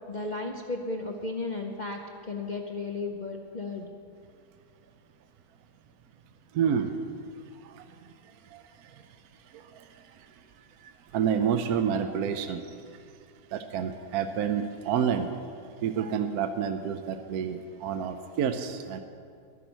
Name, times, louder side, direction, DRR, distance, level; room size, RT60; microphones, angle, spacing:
voice 1, 0.1-2.0 2.3-3.9, left 3 dB, 50° left, 1 dB, 0.5 m, -34 dB
voice 2, 6.5-7.0 7.5-13.0 13.5-15.3 15.8-19.0, right 7 dB, 70° right, 7 dB, 1.1 m, -30 dB
11.5 x 11.0 x 6.2 m, 2.3 s
omnidirectional pair, 1.8 m